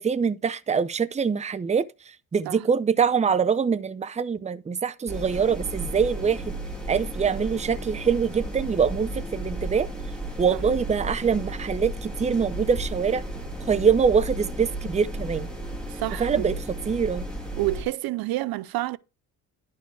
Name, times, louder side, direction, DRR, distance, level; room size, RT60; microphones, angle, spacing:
voice 1, 0.0-1.9 2.3-6.5 6.9-9.9 10.4-13.2 13.7-15.5 16.2-16.5 16.9-17.3, right 6 dB, 20° right, 0.5 m, -24 dB
sound 1, 5.1-17.8, right 1 dB, ahead, 2.9 m, -34 dB
voice 2, 15.9-16.6 17.6-19.0, right 17 dB, 75° right, 0.5 m, -29 dB
11.0 x 4.6 x 4.7 m
cardioid pair, 85°, 37 cm